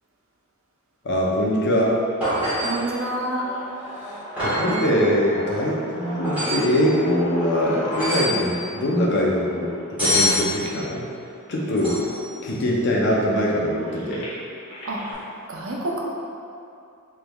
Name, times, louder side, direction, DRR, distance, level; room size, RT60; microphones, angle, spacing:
voice 1, 1.0-1.9 4.4-11.1 11.5-12.1 12.4-14.2, equal, 55° left, -3 dB, 0.5 m, -22 dB
sound 1, 1.7-11.7 12.3-12.4 12.7-15.1, left 1 dB, 80° left, 1.1 m, -37 dB
sound 2, 2.2-2.8 4.4-4.8 6.2-6.7 7.9-8.4 10.0-10.4 11.8-12.2 15.0-15.1, left 1 dB, 5° right, 1.4 m, -24 dB
voice 2, 2.6-3.4 13.8-14.1 14.8-15.0 15.5-16.0, right 1 dB, 60° right, -3 dB, 0.5 m, -28 dB
3.3 x 3.1 x 2.2 m, 2.5 s
head